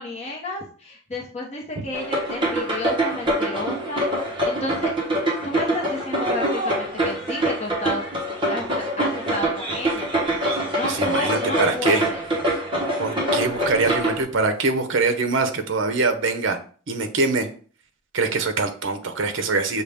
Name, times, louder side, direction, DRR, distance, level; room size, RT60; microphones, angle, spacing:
voice 1, 0.0-5.0 5.4-8.0 8.5-10.1 10.7-12.3, left 2 dB, 30° left, -2 dB, 0.8 m, -31 dB
sound 1, 1.9-14.2, right 1 dB, 25° right, 0.9 m, -25 dB
voice 2, 10.8-12.0 13.0-16.6 16.9-17.5 18.1-19.8, right 3 dB, 60° right, 7 dB, 0.7 m, -23 dB
6.3 x 2.3 x 3.4 m, 0.41 s
head